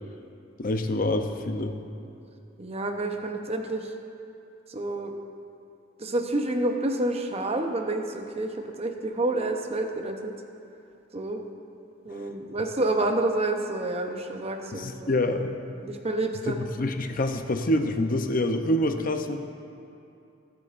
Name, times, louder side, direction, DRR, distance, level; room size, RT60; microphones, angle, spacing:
voice 1, 0.6-1.7 14.7-15.5 16.5-19.4, left 1 dB, 50° left, 6 dB, 0.7 m, -26 dB
voice 2, 2.6-3.9 4.7-5.1 6.0-10.3 11.1-11.4 12.0-15.1 15.8-16.7, right 2 dB, 35° right, 4 dB, 0.8 m, -29 dB
21.5 x 8.5 x 2.6 m, 2.6 s
head